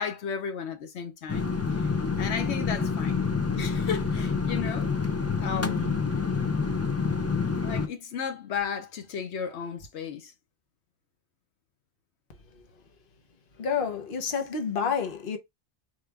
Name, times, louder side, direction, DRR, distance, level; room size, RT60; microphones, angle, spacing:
voice 1, 0.0-1.5 2.2-3.2 3.6-4.9 5.4-6.0 7.6-10.3, left 7 dB, 90° left, 1.1 m, -34 dB
sound 1, 1.3-7.9, left 5 dB, 25° left, 0.3 m, -27 dB
voice 2, 13.6-15.4, left 6 dB, 55° left, 1.1 m, -29 dB
4.7 x 2.5 x 3.3 m
omnidirectional pair, 1.1 m